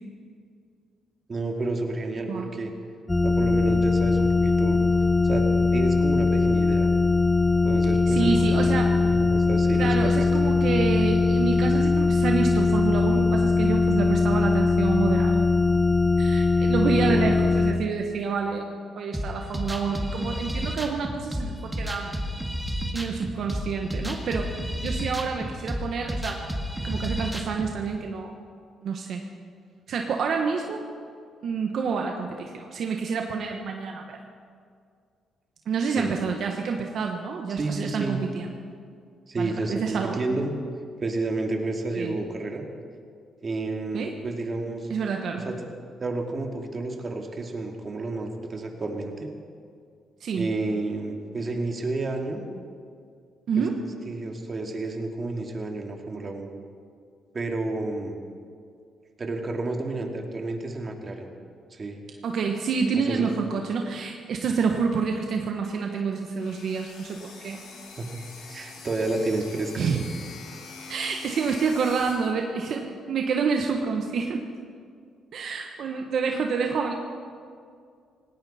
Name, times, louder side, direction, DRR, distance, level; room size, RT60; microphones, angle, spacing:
voice 1, 1.3-2.7 3.2-4.8 5.2-5.5 5.7-6.9 7.6-8.8 9.0-10.3 16.8-17.4 36.0-36.2 37.6-38.2 39.3-40.5 41.0-42.7 43.4-44.9 45.3-45.7 46.0-49.3 50.4-52.4 53.6-53.7 54.1-56.5 57.3-58.2 59.2-61.3 61.7-62.0 63.1-63.3 68.0-69.9, right 2 dB, 35° right, 2 dB, 2.3 m, -31 dB
sound 1, 3.1-17.7, left 3 dB, 15° left, 1.2 m, -21 dB
voice 2, 8.1-8.9 9.7-15.3 16.2-22.1 22.9-24.5 24.8-26.4 26.8-28.3 28.8-29.2 29.9-30.8 31.4-34.2 35.7-38.5 39.4-40.2 42.0-42.1 43.9-44.1 44.9-45.4 50.2-50.5 53.5-53.7 62.2-67.6 69.7-70.0 70.9-74.4 75.3-76.9, right 5 dB, 65° right, 3 dB, 1.3 m, -28 dB
sound 2, 19.1-27.7, equal, 5° right, 1.9 m, -31 dB
sound 3, 66.4-72.1, left 4 dB, 85° left, 3.9 m, -44 dB
18.5 x 17.5 x 4.3 m, 2.3 s
cardioid pair, 90°, 0 cm